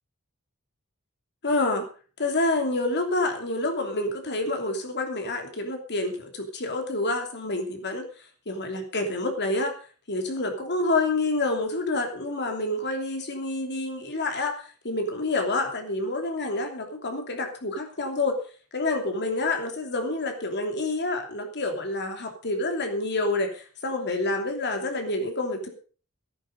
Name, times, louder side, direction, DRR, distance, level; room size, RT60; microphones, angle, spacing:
voice 1, 1.4-1.9 2.2-9.7 10.1-18.4 18.7-25.7, left 2 dB, 50° left, 5 dB, 3.0 m, -28 dB
14.5 x 11.0 x 5.2 m, 0.39 s
head